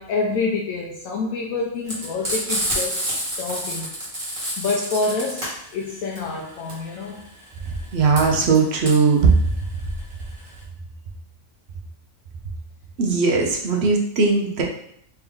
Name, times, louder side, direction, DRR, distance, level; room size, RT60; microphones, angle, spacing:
voice 1, 0.0-3.0 3.4-3.9 4.6-7.2, left 4 dB, 85° left, -2 dB, 1.0 m, -27 dB
Frying (food), 1.9-10.6, equal, 25° right, 1.4 m, -28 dB
voice 2, 7.9-9.3 13.0-14.6, right 4 dB, 55° right, 1 dB, 0.9 m, -18 dB
3.4 x 3.0 x 3.6 m, 0.69 s
omnidirectional pair, 1.4 m